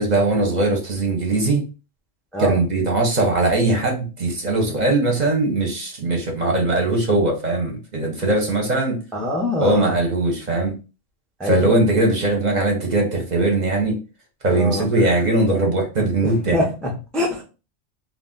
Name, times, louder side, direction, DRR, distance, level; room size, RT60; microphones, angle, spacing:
voice 1, 0.0-1.6 2.4-9.0 9.6-10.7 11.4-14.0 14.4-16.6, right 2 dB, 45° right, 0.7 m, -20 dB
voice 2, 9.1-9.9 11.4-11.8 14.5-14.9 16.2-17.4, left 1 dB, ahead, 0.3 m, -24 dB
2.4 x 2.1 x 3.6 m
omnidirectional pair, 1.2 m